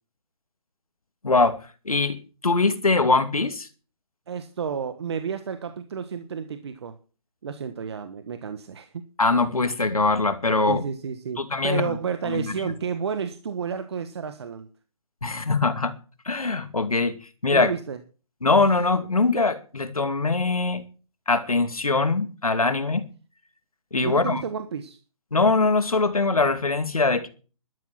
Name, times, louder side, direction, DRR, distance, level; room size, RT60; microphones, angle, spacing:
voice 1, 1.2-2.2 2.4-3.7 9.2-10.8 11.4-12.0 12.3-12.7 15.2-15.9 16.3-17.2 17.4-17.7 18.4-20.8 21.3-23.0 23.9-24.4 25.3-27.3, left 3 dB, 80° left, 2.5 m, -22 dB
voice 2, 4.3-6.9 7.4-9.0 10.7-14.7 17.5-18.0 24.0-25.0, right 6 dB, 50° right, 1.4 m, -31 dB
12.5 x 12.0 x 6.0 m
figure-of-eight pair, 145°, 18 cm